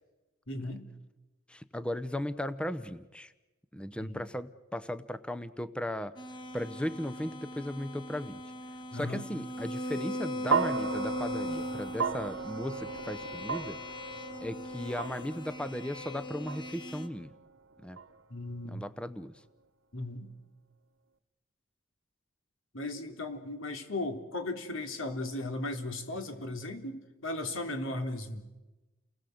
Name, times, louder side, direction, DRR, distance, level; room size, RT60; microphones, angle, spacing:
voice 1, 0.5-0.9 4.0-4.2 8.9-9.3 18.3-18.8 19.9-20.3 22.7-28.4, left 2 dB, 75° left, 6 dB, 3.3 m, -36 dB
voice 2, 1.5-3.3 3.7-6.2 6.5-8.4 8.9-13.8 14.4-17.3 17.8-18.0 18.6-19.4, left 1 dB, 5° left, 12 dB, 0.8 m, -37 dB
sound 1, 6.2-17.1, left 1 dB, 25° left, 1.6 m, -39 dB
sound 2, 10.5-18.8, right 5 dB, 85° right, 1.4 m, -36 dB
30.0 x 20.0 x 7.9 m, 1.1 s
head